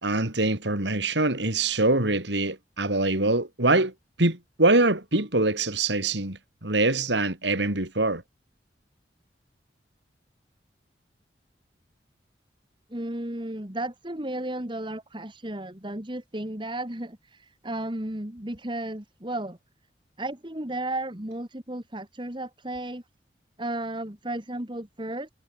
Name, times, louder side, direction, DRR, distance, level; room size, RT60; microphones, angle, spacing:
voice 1, 0.0-3.9 4.2-8.2, right 2 dB, 85° right, 4.4 m, -24 dB
voice 2, 12.9-19.6 20.2-23.0 23.6-25.3, right 1 dB, 25° right, 2.3 m, -34 dB
open air
head